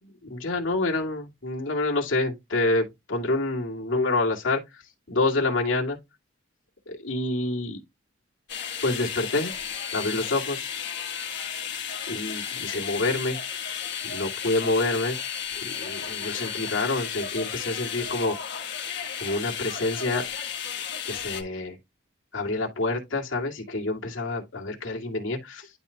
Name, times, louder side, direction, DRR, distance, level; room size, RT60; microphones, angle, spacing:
voice 1, 0.0-4.8 5.1-6.0 6.9-7.8 8.8-9.5 9.9-10.7 12.1-13.4 14.0-15.2 15.6-18.6 19.2-20.2 21.1-21.8 22.3-25.7, left 2 dB, 75° left, 2.3 m, -27 dB
sound 1, 8.5-21.4, left 8 dB, 60° left, 1.4 m, -33 dB
11.5 x 4.2 x 2.3 m
head